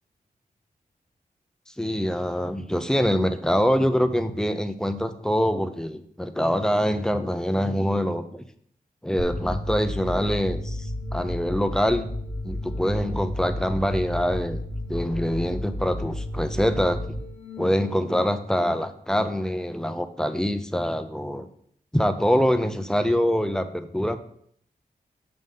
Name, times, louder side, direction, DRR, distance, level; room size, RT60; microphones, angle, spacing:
voice 1, 1.8-8.4 9.0-12.1 12.4-14.6 14.9-17.1 17.6-21.5 21.9-24.2, equal, 5° left, 9 dB, 0.5 m, -24 dB
sound 1, 9.2-18.2, left 1 dB, 55° left, 0.9 m, -32 dB
7.7 x 5.4 x 3.9 m, 0.64 s
wide cardioid pair, 110°, 15 cm